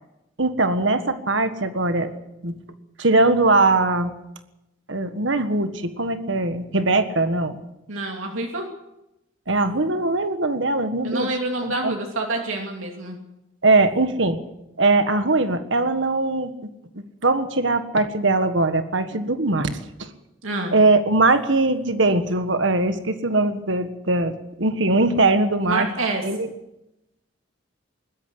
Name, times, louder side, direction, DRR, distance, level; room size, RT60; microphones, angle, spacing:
voice 1, 0.4-2.1 2.4-2.5 3.0-4.1 4.9-7.6 9.5-11.3 11.6-11.9 13.6-14.4 14.8-16.7 16.9-20.1 20.7-25.9 26.2-26.5, right 2 dB, 65° right, 9 dB, 1.6 m, -21 dB
voice 2, 7.9-8.7 11.0-13.2 20.4-20.7 25.6-26.2, right 2 dB, 80° right, 1 dB, 2.8 m, -27 dB
20.5 x 12.5 x 10.0 m, 0.90 s
head